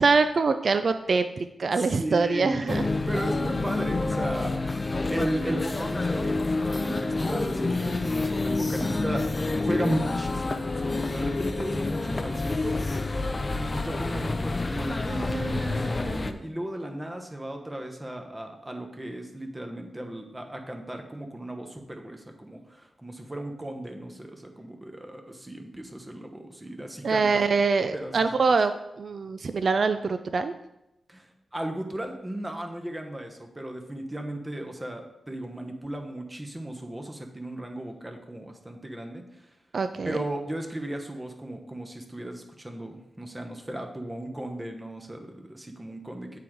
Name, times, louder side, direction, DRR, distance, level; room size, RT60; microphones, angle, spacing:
voice 1, 0.0-2.8 27.0-28.7 29.0-30.5 39.7-40.2, right 4 dB, 60° right, 9 dB, 0.4 m, -24 dB
voice 2, 1.7-4.8 5.1-9.3 9.6-13.0 13.5-27.6 27.9-28.4 31.1-39.5 40.0-46.4, right 1 dB, 20° right, 3 dB, 1.1 m, -35 dB
sound 1, 2.7-16.3, left 3 dB, 35° left, 0.5 m, -28 dB
8.4 x 3.8 x 4.6 m, 0.86 s
cardioid pair, 60°, 0 cm